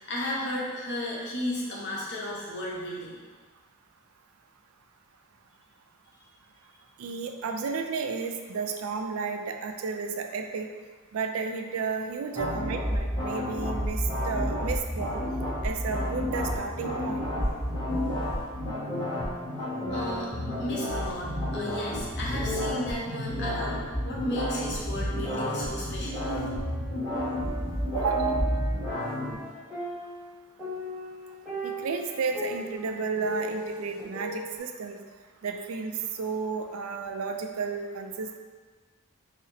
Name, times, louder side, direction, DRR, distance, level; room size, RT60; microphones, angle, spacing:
voice 1, 0.0-3.2 12.3-12.5 15.6-15.7 19.9-26.3, left 1 dB, 55° left, -4 dB, 0.8 m, -34 dB
voice 2, 7.0-10.7 11.1-15.2 15.6-17.3 27.9-28.4 31.6-35.0 35.4-38.4, right 5 dB, 85° right, 4 dB, 0.4 m, -32 dB
sound 1, 12.3-29.4, left 1 dB, 20° left, 1.2 m, -31 dB
sound 2, 16.8-18.4 18.9-20.4 20.7-23.0 23.4-25.8 26.2-30.3 30.6-34.6, right 1 dB, 5° right, 0.9 m, -37 dB
4.0 x 2.0 x 3.9 m, 1.4 s
head